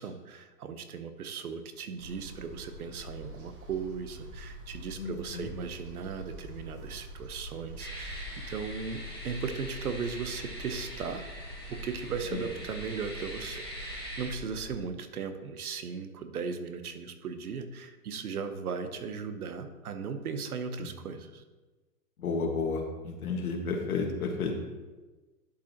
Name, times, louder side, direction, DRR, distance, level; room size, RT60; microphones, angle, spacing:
voice 1, 0.0-11.2 11.7-21.4, right 5 dB, 70° right, 9 dB, 0.9 m, -37 dB
sound 1, 2.0-14.7, equal, 35° right, 1.5 m, -46 dB
voice 2, 5.0-5.5 12.3-12.5 20.8-20.9 22.2-24.5, left 4 dB, 70° left, 3 dB, 1.6 m, -32 dB
sound 2, 7.8-14.3, equal, 20° left, 0.4 m, -43 dB
11.5 x 5.2 x 2.9 m, 1.2 s
hypercardioid pair, 175°, 46 cm